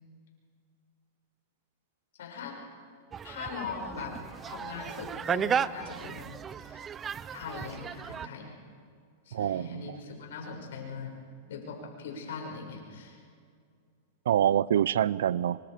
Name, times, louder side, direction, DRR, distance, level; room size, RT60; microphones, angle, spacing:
voice 1, 2.2-2.6 3.2-4.1 4.4-6.3 6.6-6.9 7.3-8.5 9.2-11.2 11.5-13.2, left 5 dB, 80° left, 1 dB, 6.5 m, -40 dB
sound 1, 3.1-8.3, right 7 dB, 20° right, 0.5 m, -34 dB
voice 2, 9.3-10.0 14.3-15.6, right 10 dB, 80° right, 21 dB, 0.5 m, -26 dB
26.5 x 25.0 x 5.2 m, 2.3 s
hypercardioid pair, 135°, 0 cm